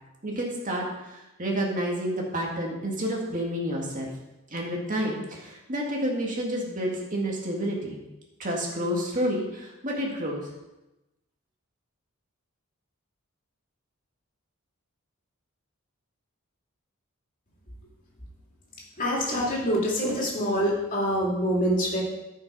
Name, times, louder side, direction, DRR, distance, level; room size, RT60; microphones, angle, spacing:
voice 1, 0.2-4.1 4.5-8.0 8.4-10.5, equal, 40° right, -1 dB, 2.0 m, -29 dB
voice 2, 19.0-22.0, equal, 40° left, -3 dB, 2.9 m, -25 dB
14.0 x 5.5 x 4.7 m, 0.98 s
head